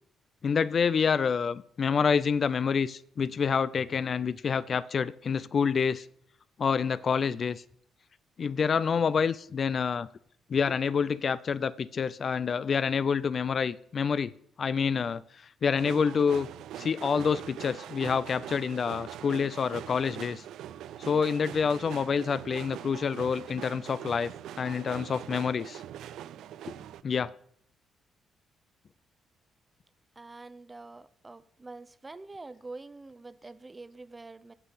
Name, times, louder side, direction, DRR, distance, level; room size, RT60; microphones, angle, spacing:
voice 1, 0.4-6.1 6.6-7.6 8.4-10.1 10.5-14.3 14.6-15.2 15.6-16.5 16.8-20.4 21.0-24.3 24.6-25.8 27.0-27.3, left 6 dB, 45° left, 17 dB, 0.3 m, -27 dB
sound 1, 15.8-27.0, right 11 dB, 80° right, 0.3 m, -42 dB
voice 2, 30.2-34.5, right 3 dB, 20° right, 14 dB, 0.6 m, -46 dB
7.5 x 6.7 x 5.7 m, 0.66 s
cardioid pair, 90°, 0 cm